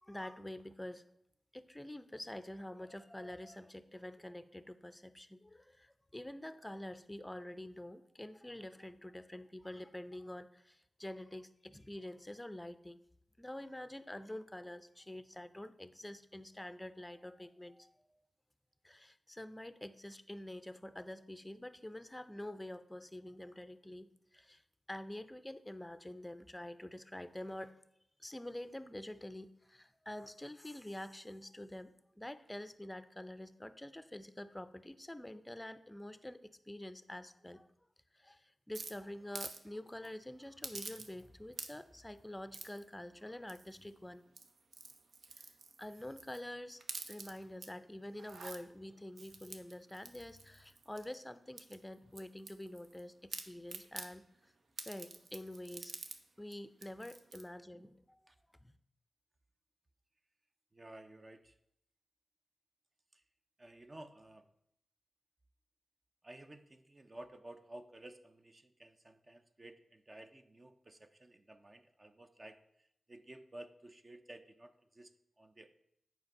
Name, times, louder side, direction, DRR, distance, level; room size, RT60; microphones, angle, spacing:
voice 1, 0.0-1.1 1.5-13.0 13.4-18.0 18.8-24.6 24.9-27.8 28.2-37.7 38.1-44.2 45.4-45.5 45.8-46.8 47.1-54.5 54.8-55.9 56.4-58.2 58.6-58.7, left 1 dB, 10° left, 13 dB, 0.5 m, -47 dB
sound 1, 38.7-39.6 39.9-40.1 40.6-41.3 41.5-42.0 42.5-42.8 43.5-43.9 44.3-46.4 46.8-47.7 48.1-48.6 49.2-51.2 51.6-53.0 53.3-54.1 54.8-56.2 56.5-56.6 56.8-57.4, right 4 dB, 80° right, 0.8 m, -48 dB
voice 2, 60.7-61.5 63.1-63.2 63.6-64.5 66.2-75.1 75.4-75.7, right 1 dB, 30° right, 8 dB, 0.6 m, -54 dB
7.9 x 5.1 x 5.4 m, 0.76 s
wide cardioid pair, 75°, 0 cm